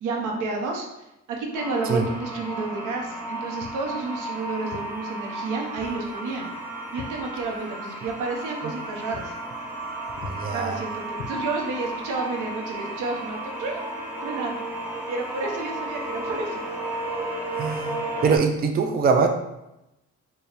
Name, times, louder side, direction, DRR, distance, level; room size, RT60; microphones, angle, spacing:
voice 1, 0.0-0.9 1.3-6.5 6.9-9.3 10.5-13.8 14.2-14.6 15.1-16.6, right 3 dB, 85° right, 1 dB, 0.8 m, -30 dB
sound 1, 1.5-18.4, right 1 dB, 5° right, 0.9 m, -33 dB
Walk footsteps, 3.6-3.9 4.7-4.9 5.8-6.0 6.3-7.8 8.0-8.2 8.6-8.8 9.1-9.3 9.6-9.9 10.2-10.4 11.1-11.8, left 5 dB, 65° left, 0.5 m, -41 dB
voice 2, 10.2-10.8 17.6-19.3, right 5 dB, 30° right, 4 dB, 0.4 m, -23 dB
4.4 x 2.3 x 3.2 m, 0.90 s
cardioid pair, 90°, 30 cm